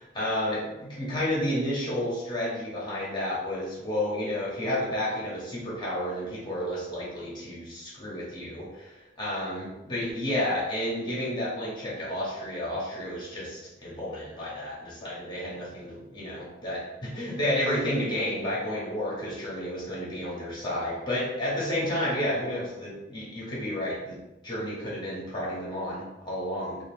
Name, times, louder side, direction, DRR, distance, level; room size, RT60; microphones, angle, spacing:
voice 1, 0.0-24.2 24.4-26.8, left 1 dB, 25° left, -6 dB, 0.9 m, -31 dB
3.7 x 2.5 x 3.5 m, 0.99 s
head